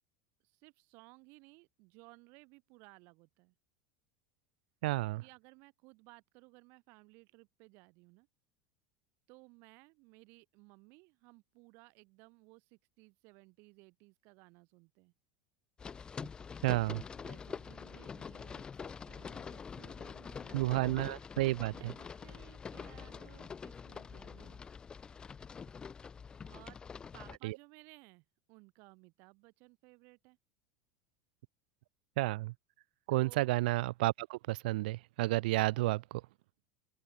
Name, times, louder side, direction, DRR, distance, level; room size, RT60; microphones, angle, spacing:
voice 1, 0.4-3.5 5.2-8.3 9.3-15.1 17.2-20.8 21.7-24.6 26.4-26.8 27.1-30.4 33.1-33.5, right 28 dB, 50° right, 7.8 m, -59 dB
voice 2, 4.8-5.2 16.6-17.0 20.5-21.9 27.4-27.5 32.2-32.5 33.1-36.2, right 19 dB, 80° right, 0.9 m, -31 dB
sound 1, 15.8-27.4, left 6 dB, 15° left, 4.1 m, -46 dB
open air
supercardioid pair, 155°, 5 cm